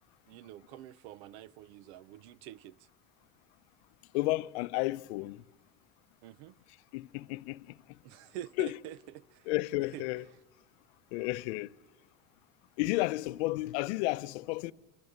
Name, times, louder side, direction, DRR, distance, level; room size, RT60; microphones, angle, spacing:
voice 1, 0.3-2.9 6.2-6.5 8.0-9.5 9.8-10.3, right 13 dB, 85° right, 0.7 m, -47 dB
voice 2, 4.1-5.4 6.9-7.7 8.6-8.7 9.5-10.2 11.1-11.7 12.8-14.7, left 20 dB, 85° left, 0.7 m, -32 dB
28.5 x 15.0 x 9.5 m
cardioid pair, 145°, 32 cm